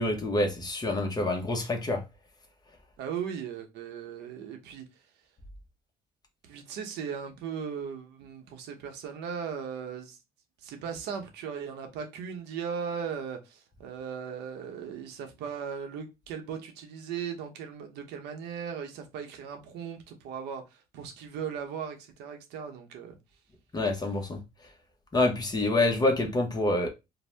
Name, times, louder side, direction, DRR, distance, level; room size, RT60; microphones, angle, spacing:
voice 1, 0.0-2.0 23.7-24.4 25.1-26.9, left 2 dB, 25° left, 0.7 m, -27 dB
voice 2, 3.0-4.8 6.4-10.2 10.6-23.2, right 7 dB, 85° right, 0.7 m, -38 dB
2.6 x 2.0 x 3.2 m
cardioid pair, 110°, 17 cm